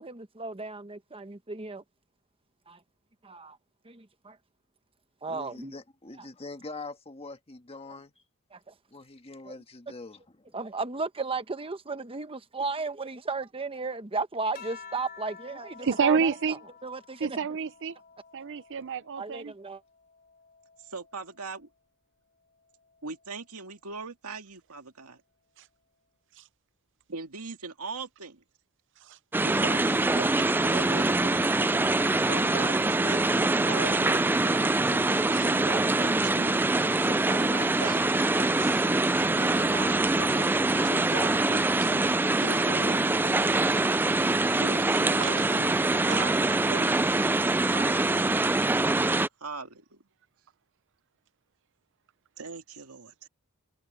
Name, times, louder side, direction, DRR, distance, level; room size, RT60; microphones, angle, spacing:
voice 1, 0.0-1.8 2.7-2.8 3.2-3.6 3.8-4.4 5.2-5.7 8.5-8.6 9.5-9.6 10.5-16.6 16.8-17.4 19.2-19.8, right 3 dB, 25° right, 1.1 m, -35 dB
voice 2, 5.3-8.1 8.9-10.6, left 3 dB, 25° left, 1.7 m, -43 dB
sound 1, 14.5-19.3 19.8-21.5 22.7-23.2, left 6 dB, 45° left, 4.0 m, -50 dB
voice 3, 15.8-16.6 17.2-17.9 18.3-19.5 29.1-29.2 35.3-35.5 41.3-41.4 45.2-45.4 46.1-46.4, right 6 dB, 55° right, 0.6 m, -29 dB
voice 4, 20.8-21.7 23.0-25.2 27.1-28.4 29.4-31.5 32.3-36.6 37.0-39.0 39.4-43.6 44.6-45.9 46.7-47.0 49.4-50.0 52.4-53.3, right 3 dB, 80° right, 2.3 m, -41 dB
sound 2, 29.3-49.3, right 2 dB, 10° right, 0.3 m, -24 dB
head